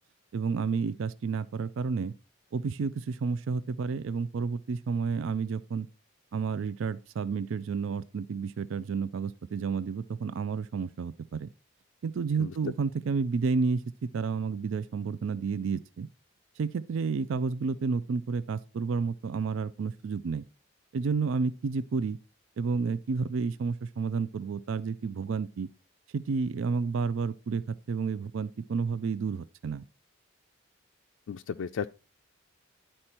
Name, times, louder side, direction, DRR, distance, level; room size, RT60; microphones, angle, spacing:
voice 1, 0.3-2.1 2.5-5.9 6.3-11.5 12.0-16.1 16.6-20.4 20.9-22.2 22.6-25.7 26.1-29.8, right 5 dB, 70° right, 0.4 m, -31 dB
voice 2, 31.3-31.9, left 7 dB, 70° left, 0.3 m, -34 dB
11.5 x 4.4 x 4.3 m
head